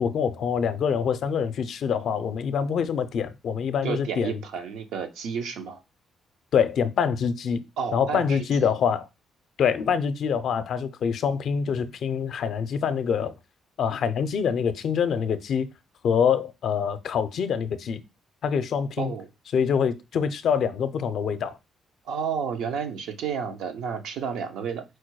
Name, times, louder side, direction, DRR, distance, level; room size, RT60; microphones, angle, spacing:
voice 1, 0.0-4.4 6.5-7.6 7.9-9.1 9.6-13.3 13.8-15.7 16.0-18.0 18.4-19.1 19.5-21.6, left 7 dB, 65° left, 0.5 m, -25 dB
voice 2, 3.8-5.8 7.8-8.7 19.0-19.3 22.0-24.8, right 6 dB, 85° right, 0.7 m, -31 dB
4.5 x 2.2 x 4.6 m
cardioid pair, 90°, 0 cm